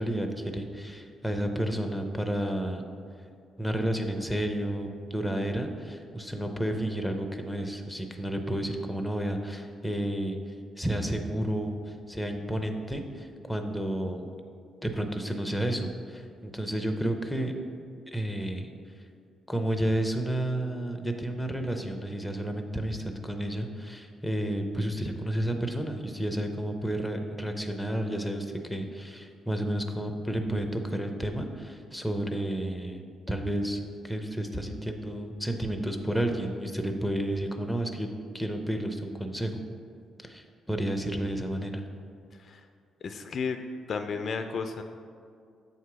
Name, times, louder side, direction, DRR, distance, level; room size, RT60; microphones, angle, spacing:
voice 1, 0.0-2.8 3.6-10.4 10.8-14.2 14.8-17.5 18.1-18.7 19.5-33.0 33.3-38.1 38.3-39.6 40.2-41.8, right 1 dB, ahead, 4 dB, 0.5 m, -31 dB
voice 2, 43.0-43.6 43.9-44.8, left 5 dB, 50° left, 7 dB, 0.3 m, -33 dB
7.5 x 2.9 x 4.7 m, 2.3 s
cardioid pair, 90°, 0 cm